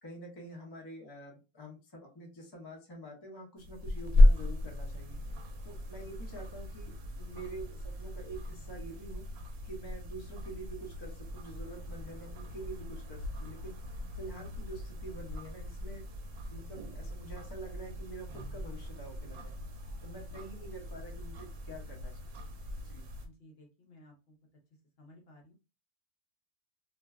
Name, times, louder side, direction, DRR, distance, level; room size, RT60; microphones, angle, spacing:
voice 1, 0.0-9.2 9.6-13.8 14.2-16.1 16.5-19.6 20.0-22.2 22.8-23.1, right 2 dB, 30° left, 0 dB, 0.5 m, -47 dB
sound 1, 3.6-23.3, left 1 dB, 85° right, 1.0 m, -33 dB
voice 2, 23.2-24.4 25.0-25.5, left 1 dB, 60° left, 1 dB, 0.8 m, -58 dB
2.5 x 2.2 x 2.3 m, 0.30 s
omnidirectional pair, 1.3 m